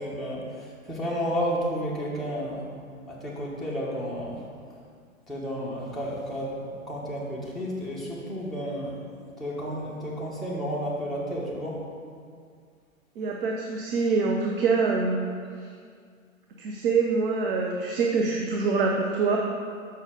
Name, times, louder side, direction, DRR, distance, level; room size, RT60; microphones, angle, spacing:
voice 1, 0.0-2.7 3.1-4.4 5.3-9.0 9.4-11.8, equal, ahead, -7 dB, 0.9 m, -32 dB
voice 2, 13.2-15.3 16.6-19.4, right 4 dB, 40° right, 0 dB, 0.6 m, -25 dB
6.3 x 5.5 x 3.7 m, 2.1 s
figure-of-eight pair, 110°, 41 cm